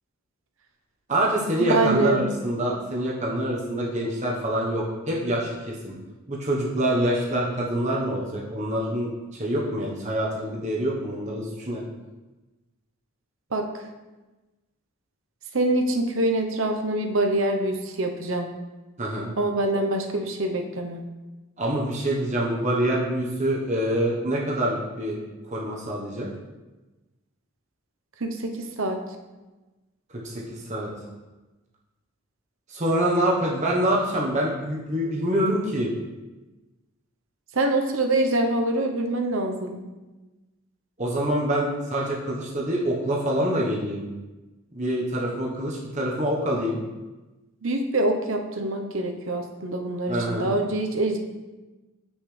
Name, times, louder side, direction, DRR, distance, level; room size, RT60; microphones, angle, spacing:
voice 1, 1.1-5.9 6.3-11.8 19.0-19.3 21.6-25.2 25.5-26.3 30.1-30.9 32.7-35.9 41.0-44.0 44.7-46.8 50.1-50.5, right 1 dB, 35° right, -4 dB, 1.1 m, -26 dB
voice 2, 1.7-2.3 13.5-13.6 15.5-18.5 19.4-21.0 28.2-29.0 37.5-39.8 47.6-51.2, right 2 dB, 65° right, 3 dB, 0.9 m, -25 dB
8.3 x 6.3 x 3.3 m, 1.1 s
head